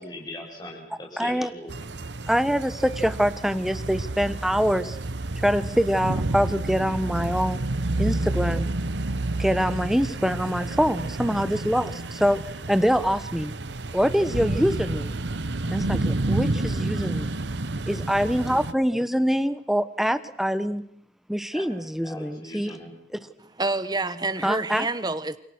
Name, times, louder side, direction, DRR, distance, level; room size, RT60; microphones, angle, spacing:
voice 1, 0.0-1.7 21.5-21.7 22.0-22.9, left 1 dB, 20° left, -1 dB, 6.7 m, -40 dB
voice 2, 1.2-1.5 2.3-5.0 5.4-7.6 8.0-8.7 9.4-13.5 13.9-15.2 15.7-17.4 17.9-20.8 21.3-22.8 24.4-24.9, equal, ahead, 11 dB, 1.3 m, -24 dB
sound 1, 1.7-18.7, right 2 dB, 75° right, 1.1 m, -30 dB
voice 3, 23.6-25.4, right 2 dB, 20° right, 12 dB, 1.4 m, -27 dB
29.0 x 27.5 x 6.3 m, 0.67 s
head